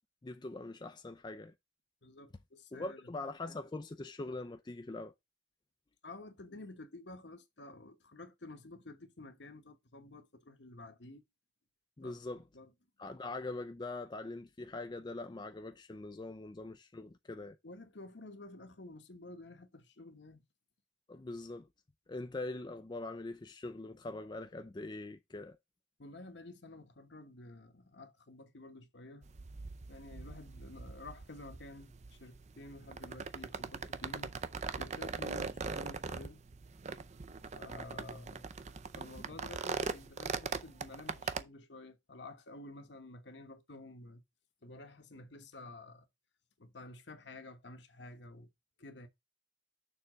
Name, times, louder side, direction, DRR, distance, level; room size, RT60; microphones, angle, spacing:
voice 1, 0.2-1.5 2.7-5.1 12.0-12.4 13.0-17.6 21.1-21.7 22.1-25.6, left 2 dB, 25° left, 0.4 m, -42 dB
voice 2, 2.0-3.1 6.0-11.2 12.0-12.2 12.5-12.7 17.6-20.4 26.0-29.3 29.9-34.3 34.7-36.4 37.5-38.5 39.0-44.2 44.6-46.1 46.6-48.5 48.8-49.1, left 2 dB, 65° left, 1.2 m, -51 dB
sound 1, 29.2-41.4, right 4 dB, 35° right, 0.5 m, -41 dB
6.8 x 3.5 x 6.2 m
head